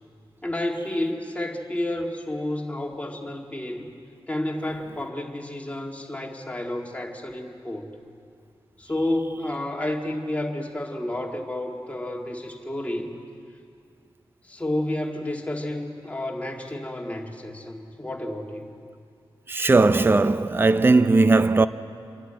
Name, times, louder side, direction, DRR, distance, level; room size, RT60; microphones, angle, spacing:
voice 1, 0.4-3.9 4.3-7.9 8.8-13.1 14.4-18.7, left 1 dB, 15° left, 2.0 m, -30 dB
voice 2, 19.5-21.7, right 3 dB, 25° right, 0.5 m, -18 dB
28.0 x 11.5 x 8.9 m
wide cardioid pair, 105°, 9 cm